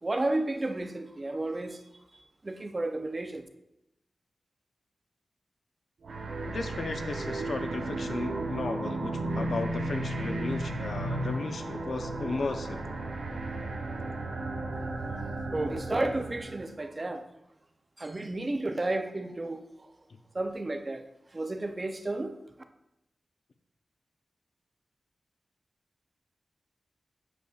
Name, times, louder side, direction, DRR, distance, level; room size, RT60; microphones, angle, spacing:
voice 1, 0.0-1.9 2.4-3.5 15.5-17.2 18.0-19.9 20.3-21.0 21.3-22.4, right 2 dB, 25° right, 0.5 m, -32 dB
sound 1, 6.0-16.7, right 2 dB, 75° right, 0.9 m, -34 dB
voice 2, 6.5-12.8, left 3 dB, 65° left, 0.6 m, -35 dB
8.1 x 6.5 x 2.4 m
wide cardioid pair, 145°, 0 cm